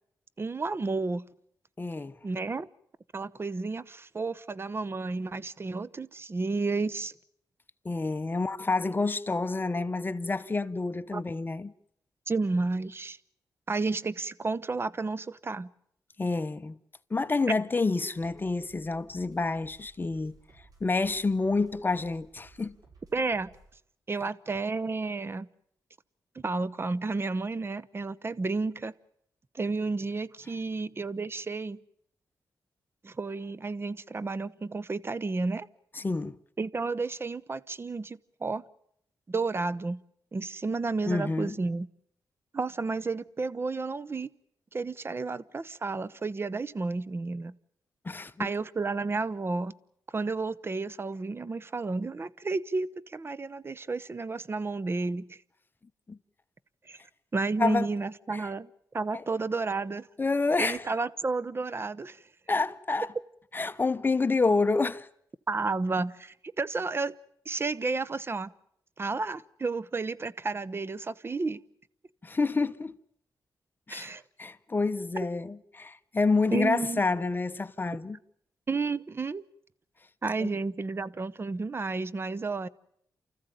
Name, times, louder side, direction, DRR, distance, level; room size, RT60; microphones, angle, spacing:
voice 1, 0.4-1.3 2.2-2.7 3.1-7.1 11.1-11.2 12.3-13.2 13.7-15.7 23.1-23.5 24.1-25.5 26.3-28.9 29.5-31.8 33.0-35.7 36.6-38.6 39.3-40.0 40.3-41.9 42.5-44.3 44.7-47.5 48.4-49.7 50.1-55.4 56.9-57.0 57.3-60.1 60.6-62.2 65.5-67.1 67.5-68.5 69.0-71.6 73.9-74.2 76.5-77.0 78.7-79.4 80.2-82.7, right 3 dB, 35° right, 0.8 m, -31 dB
voice 2, 1.8-2.1 7.8-11.7 16.2-16.8 17.1-20.4 20.8-22.8 36.0-36.4 41.1-41.6 48.0-48.5 56.1-56.2 57.6-57.9 58.3-58.4 60.2-60.8 62.5-63.1 63.5-65.1 72.2-73.0 73.9-78.2 80.4-80.5, left 3 dB, 30° left, 0.9 m, -28 dB
sound 1, 18.1-23.8, right 3 dB, 60° right, 7.0 m, -58 dB
29.0 x 14.5 x 9.3 m
cardioid pair, 85°, 7 cm